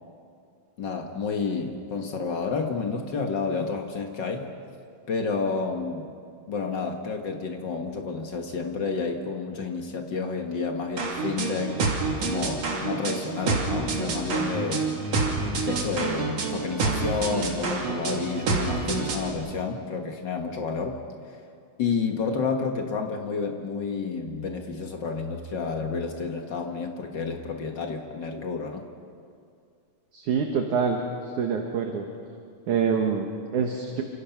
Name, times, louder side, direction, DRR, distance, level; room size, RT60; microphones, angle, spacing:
voice 1, 0.8-4.5 5.1-6.1 6.5-11.8 12.2-14.9 15.6-21.0 21.3-21.4 21.8-28.8, left 4 dB, 65° left, 4 dB, 1.1 m, -30 dB
sound 1, 11.0-19.3, right 3 dB, 45° right, 3.3 m, -28 dB
voice 2, 30.1-31.0 31.4-32.1 32.7-34.0, right 6 dB, 60° right, 3 dB, 2.6 m, -26 dB
28.5 x 27.0 x 5.9 m, 2.3 s
omnidirectional pair, 4.5 m